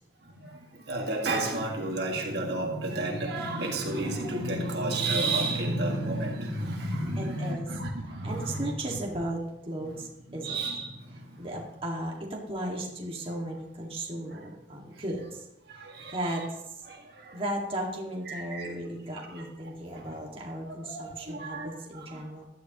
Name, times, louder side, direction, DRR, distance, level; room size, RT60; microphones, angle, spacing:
voice 1, 0.2-9.0 9.8-11.5 14.3-14.5 14.9-15.0 15.7-16.5 16.9-17.4 18.3-18.7 19.3-19.4 19.9-20.2 20.7-22.3, right 2 dB, 55° right, 1 dB, 1.8 m, -32 dB
voice 2, 7.2-7.7 8.2-10.1 10.3-10.6 11.4-15.5 15.7-16.8 17.3-22.5, right 1 dB, 30° right, -2 dB, 1.9 m, -35 dB
16.0 x 11.5 x 3.0 m, 0.90 s
head